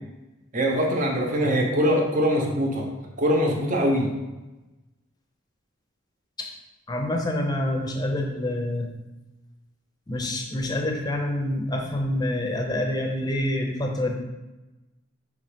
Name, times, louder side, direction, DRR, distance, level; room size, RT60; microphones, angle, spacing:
voice 1, 0.5-2.9 3.2-4.1, equal, 40° right, 1 dB, 0.9 m, -22 dB
voice 2, 6.9-8.9 10.1-14.1, left 1 dB, 20° left, 2 dB, 0.7 m, -27 dB
5.7 x 3.3 x 5.1 m, 1.1 s
head